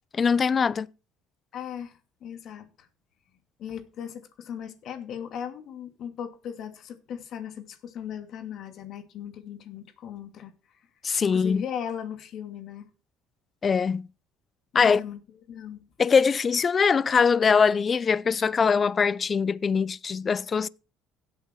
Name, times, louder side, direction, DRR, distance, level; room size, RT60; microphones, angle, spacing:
voice 1, 0.1-0.9 11.0-11.6 13.6-14.1 14.7-15.0 16.0-20.7, left 5 dB, 35° left, 0.6 m, -22 dB
voice 2, 1.5-2.9 3.6-10.5 11.2-12.9 14.8-15.2 15.5-15.9, left 9 dB, 60° left, 2.5 m, -38 dB
16.5 x 8.5 x 4.5 m
supercardioid pair, 95°, 0 cm